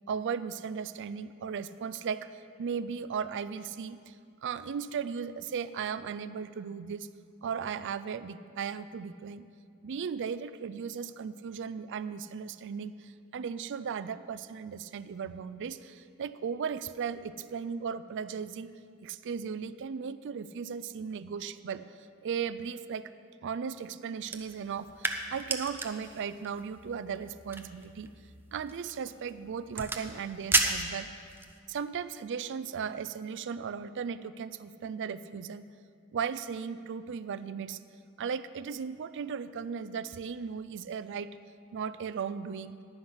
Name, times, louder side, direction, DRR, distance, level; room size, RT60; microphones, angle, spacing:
voice 1, 0.1-2.3 2.6-4.1 4.4-7.1 7.4-9.5 9.8-18.7 19.0-21.8 22.2-23.1 23.4-28.1 28.5-31.1 31.7-35.6 36.1-37.8 38.2-41.3 41.7-42.7, right 6 dB, 55° right, 14 dB, 0.4 m, -36 dB
sound 1, 24.2-31.6, right 3 dB, 10° right, 0.6 m, -35 dB
10.0 x 9.6 x 5.7 m, 2.3 s
head